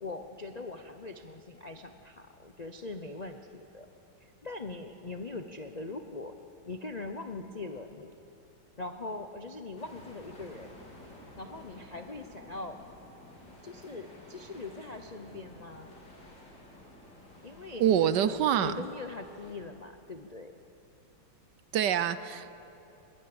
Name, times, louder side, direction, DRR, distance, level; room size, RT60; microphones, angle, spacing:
voice 1, 0.0-3.9 4.2-6.3 6.7-8.1 8.8-10.7 11.4-12.8 13.6-15.9 17.4-18.3 18.6-20.5, left 3 dB, 90° left, 6 dB, 0.3 m, -41 dB
sound 1, 9.8-19.5, left 1 dB, 55° left, 4.5 m, -52 dB
voice 2, 17.8-18.8 21.7-22.5, right 9 dB, 65° right, 14 dB, 1.2 m, -26 dB
21.5 x 20.5 x 8.8 m, 2.9 s
omnidirectional pair, 2.2 m